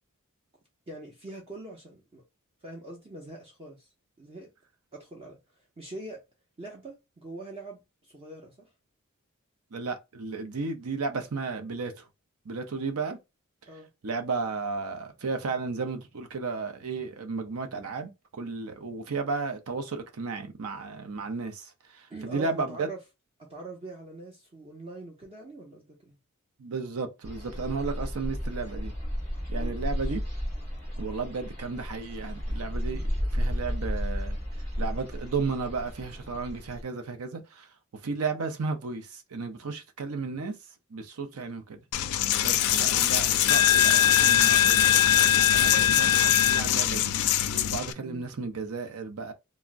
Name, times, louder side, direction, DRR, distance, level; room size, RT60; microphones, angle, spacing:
voice 1, 0.9-2.2 2.6-3.9 4.2-4.5 4.9-5.4 5.8-6.2 6.6-8.7 13.7-13.9 22.1-23.0 23.4-26.2 29.5-30.2 32.9-33.1 48.0-48.2, right 2 dB, 25° right, 0.6 m, -43 dB
voice 2, 9.7-12.0 12.5-13.2 14.0-22.9 26.6-28.9 29.5-30.2 31.0-34.4 34.8-37.7 38.0-40.5 40.9-41.8 42.4-45.2 45.5-47.1 47.7-49.3, right 4 dB, 70° right, 0.6 m, -34 dB
sound 1, 27.2-36.8, equal, 45° right, 1.6 m, -33 dB
Coin (dropping), 41.9-47.9, left 10 dB, 75° left, 0.4 m, -21 dB
3.4 x 2.0 x 2.5 m
head